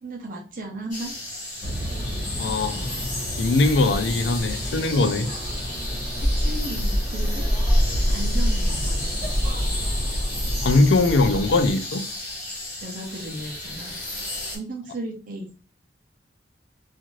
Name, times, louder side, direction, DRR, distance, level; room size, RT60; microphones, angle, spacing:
voice 1, 0.0-1.2 6.3-7.5 8.1-9.3 12.8-14.0 14.5-15.5, right 1 dB, 50° right, 0.6 m, -35 dB
sound 1, 0.9-14.6, left 1 dB, 45° left, 1.2 m, -34 dB
sound 2, 1.6-11.7, equal, 30° right, 1.1 m, -26 dB
voice 2, 2.4-3.0 3.4-5.3 10.6-12.1, left 3 dB, 85° left, 0.4 m, -21 dB
2.5 x 2.5 x 3.0 m
head